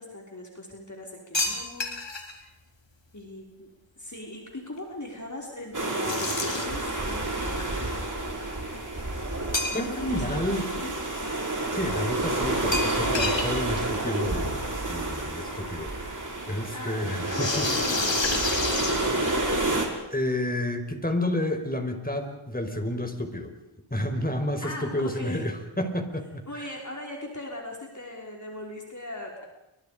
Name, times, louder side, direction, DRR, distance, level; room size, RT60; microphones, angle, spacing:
voice 1, 0.0-1.9 2.4-2.5 3.1-3.7 4.0-7.8 9.7-11.0 16.4-17.0 17.3-19.1 24.6-25.4 26.5-29.5, left 1 dB, 35° left, -1 dB, 5.4 m, -39 dB
sound 1, 1.3-2.3 6.0-6.9 9.5-10.1 10.5-10.6 12.7-13.5 13.8-13.9 14.1-14.2 15.4-15.5 17.2-19.6, left 3 dB, 60° left, 4.4 m, -29 dB
sound 2, 5.7-19.9, right 2 dB, 40° right, 6.1 m, -29 dB
voice 2, 9.7-10.7 11.7-14.6 14.9-15.9 16.5-17.7 20.1-23.5 23.9-26.4, left 1 dB, 20° left, 6 dB, 5.1 m, -30 dB
29.5 x 25.5 x 5.2 m, 0.89 s
cardioid pair, 45°, 49 cm